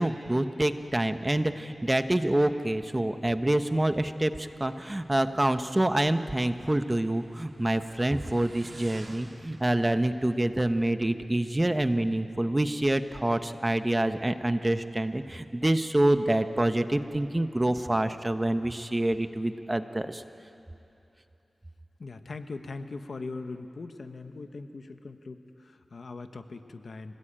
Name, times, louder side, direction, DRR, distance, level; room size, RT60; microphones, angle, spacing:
voice 1, 0.0-20.2, right 1 dB, 20° right, 9 dB, 1.1 m, -27 dB
Motorcycle, 3.4-11.6, right 2 dB, 45° right, 2.7 m, -53 dB
voice 2, 22.0-27.2, left 3 dB, 70° left, 8 dB, 1.3 m, -40 dB
26.0 x 18.5 x 8.9 m, 2.9 s
cardioid pair, 55°, 0 cm